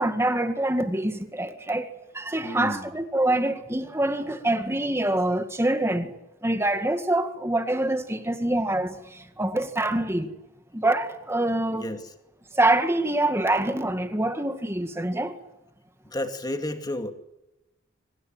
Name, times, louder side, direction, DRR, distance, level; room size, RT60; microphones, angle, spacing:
voice 1, 0.0-1.9 2.1-6.1 6.4-10.3 10.7-11.9 12.5-15.3, right 1 dB, 10° right, 1.9 m, -25 dB
voice 2, 2.4-2.9 11.7-12.0 16.0-17.1, left 1 dB, 20° left, 2.4 m, -31 dB
25.0 x 20.0 x 9.0 m
head